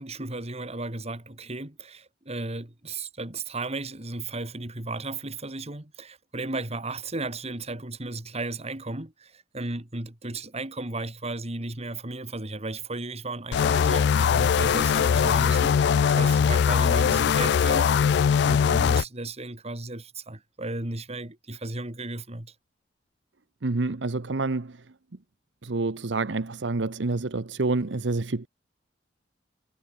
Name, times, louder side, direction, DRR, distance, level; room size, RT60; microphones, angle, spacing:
voice 1, 0.0-22.5, right 2 dB, 35° right, 2.6 m, -35 dB
sound 1, 13.5-19.0, left 7 dB, 65° left, 0.3 m, -21 dB
voice 2, 23.6-24.8 25.6-28.5, right 3 dB, 75° right, 0.9 m, -28 dB
head